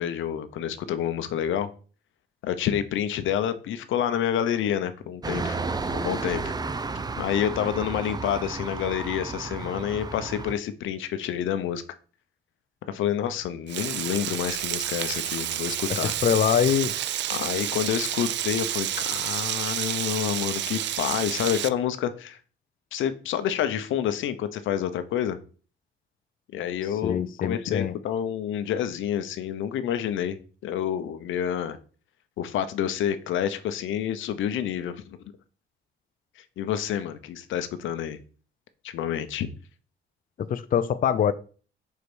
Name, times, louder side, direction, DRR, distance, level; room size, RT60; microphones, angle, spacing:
voice 1, 0.0-1.7 2.4-5.6 5.9-6.5 7.2-11.8 12.9-16.2 17.3-22.4 22.9-25.4 26.5-31.8 32.4-35.2 36.4-38.2 38.8-39.5, left 9 dB, 80° left, 0.9 m, -28 dB
sound 1, 5.2-10.5, right 3 dB, 20° right, 0.6 m, -32 dB
Frying (food), 13.7-21.7, right 11 dB, 65° right, 0.5 m, -30 dB
voice 2, 15.9-16.9 27.0-27.9 40.5-41.3, left 8 dB, 45° left, 0.5 m, -24 dB
5.3 x 4.7 x 6.2 m
cardioid pair, 90°, 20 cm